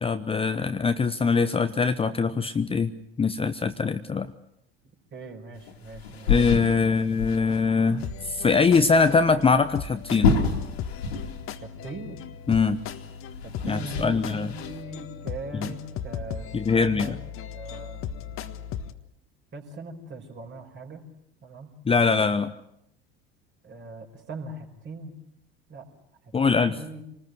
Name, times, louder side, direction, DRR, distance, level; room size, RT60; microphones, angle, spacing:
voice 1, 0.0-2.9 3.2-4.3 6.3-10.4 12.5-12.8 13.7-14.5 15.6-15.7 16.5-17.2 21.9-22.5 26.3-26.8, left 4 dB, 15° left, 10 dB, 0.9 m, -23 dB
voice 2, 5.1-6.4 7.0-7.1 11.6-12.2 13.4-17.2 17.5-18.0 19.5-21.1 21.4-21.7 23.6-25.2 25.7-25.9 26.2-27.0, right 2 dB, 35° right, 3 dB, 5.0 m, -40 dB
sound 1, 5.7-7.7 7.9-8.1 8.4-8.5 10.0-11.6 11.9-12.0 12.8-14.8, left 5 dB, 75° left, 2.7 m, -28 dB
sound 2, 8.0-18.9, left 8 dB, 45° left, 1.5 m, -37 dB
27.0 x 20.0 x 7.9 m, 0.78 s
figure-of-eight pair, 70°, 32 cm